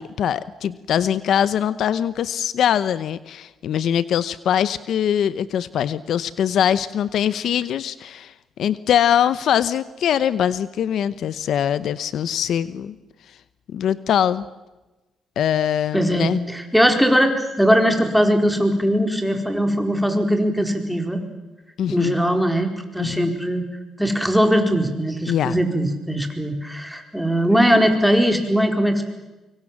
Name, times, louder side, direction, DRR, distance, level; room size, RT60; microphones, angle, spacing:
voice 1, 0.0-8.3 8.6-13.0 13.7-14.4 15.4-16.4 21.8-22.1 23.0-23.3 25.3-25.6, left 9 dB, 70° left, 15 dB, 0.9 m, -22 dB
voice 2, 15.9-21.2 21.9-23.6 24.0-29.0, equal, ahead, 5 dB, 4.4 m, -20 dB
24.5 x 24.0 x 7.4 m, 1.1 s
cardioid pair, 90°, 0 cm